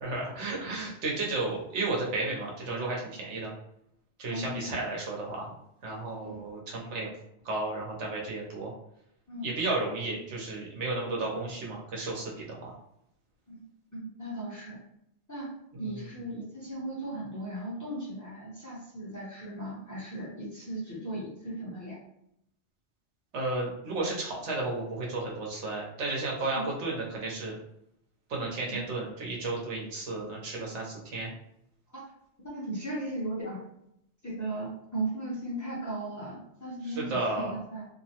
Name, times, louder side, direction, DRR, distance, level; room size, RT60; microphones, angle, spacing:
voice 1, 0.0-3.5 4.2-5.5 5.8-7.1 7.4-8.7 9.4-12.7 15.7-16.1 23.3-27.6 28.3-31.3 36.8-37.6, right 2 dB, 90° right, -2 dB, 1.1 m, -33 dB
voice 2, 4.3-4.8 6.2-6.4 9.3-9.5 13.5-13.6 13.9-14.8 15.3-15.5 15.8-22.0 26.5-26.7 28.7-28.8 31.9-32.0 32.4-33.6 34.2-37.9, right 1 dB, 20° left, -7 dB, 0.7 m, -37 dB
2.8 x 2.0 x 2.8 m, 0.78 s
omnidirectional pair, 1.2 m